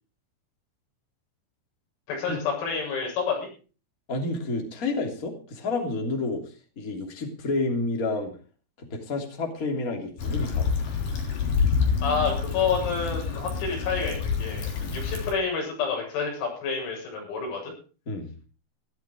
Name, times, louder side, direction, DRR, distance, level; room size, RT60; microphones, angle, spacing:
voice 1, 2.1-3.5 12.0-17.7, left 5 dB, 85° left, -1 dB, 10.0 m, -29 dB
voice 2, 4.1-6.4 6.8-8.3 8.8-10.7 14.8-15.0 18.1-18.3, left 3 dB, 25° left, 3 dB, 2.3 m, -30 dB
Stream / Traffic noise roadway noise / Trickle dribble, 10.2-15.3, left 5 dB, 45° left, 4.6 m, -27 dB
16.5 x 12.5 x 4.9 m, 0.38 s
omnidirectional pair, 6.0 m